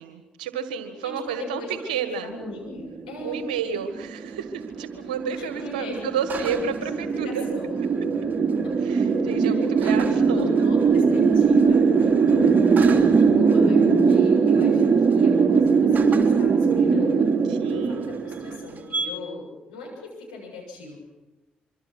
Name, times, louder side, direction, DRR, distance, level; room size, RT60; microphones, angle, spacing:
voice 1, 0.0-2.3 3.2-7.4 8.8-10.5 17.5-18.1, right 7 dB, 85° right, 9 dB, 1.8 m, -31 dB
voice 2, 1.0-1.9 2.2-3.5 5.4-6.5 6.8-7.0 7.2-7.8 8.6-8.8 9.3-17.3 17.7-21.0, left 2 dB, 90° left, -2 dB, 7.2 m, -39 dB
sound 1, 2.7-19.1, right 5 dB, 40° right, 3.5 m, -20 dB
25.5 x 25.0 x 6.2 m, 1.1 s
hypercardioid pair, 45°, 4 cm